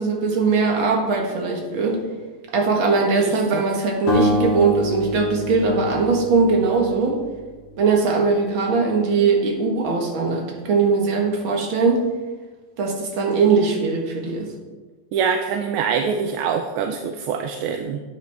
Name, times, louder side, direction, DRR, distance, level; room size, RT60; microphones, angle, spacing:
voice 1, 0.0-2.0 2.5-7.2 7.8-12.0 12.8-14.5, right 4 dB, 65° right, 1 dB, 2.3 m, -20 dB
voice 2, 3.1-3.6 15.1-18.0, right 6 dB, 80° right, 6 dB, 1.5 m, -24 dB
sound 1, 4.1-7.2, left 1 dB, 80° left, 2.8 m, -25 dB
12.0 x 8.6 x 3.5 m, 1.3 s
omnidirectional pair, 2.4 m